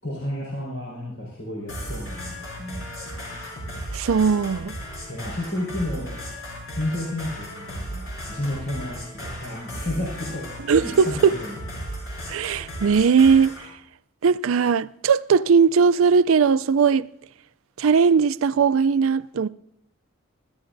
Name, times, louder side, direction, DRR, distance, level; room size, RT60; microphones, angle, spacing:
voice 1, 0.0-2.9 5.1-6.1 6.7-10.5 10.8-11.6, left 1 dB, 70° left, 5.0 m, -31 dB
sound 1, 1.7-13.7, equal, 90° left, 6.8 m, -35 dB
voice 2, 3.9-4.7 10.7-11.4 12.3-13.6 14.2-17.1 17.8-19.5, right 6 dB, 80° right, 0.4 m, -19 dB
24.0 x 14.0 x 2.6 m
head